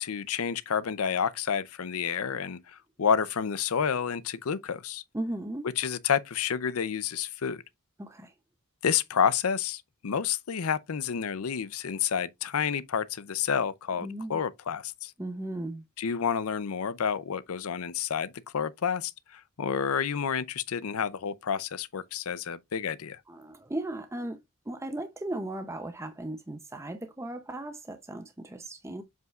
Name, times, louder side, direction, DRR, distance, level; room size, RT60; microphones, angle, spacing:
voice 1, 0.0-5.0 5.8-7.6 8.8-15.1 16.0-23.2, left 7 dB, 70° left, 0.5 m, -29 dB
voice 2, 5.1-5.7 8.0-8.3 14.0-14.4 15.2-15.8 23.3-24.4 24.7-29.0, right 1 dB, 15° right, 0.6 m, -36 dB
7.7 x 5.4 x 2.4 m
head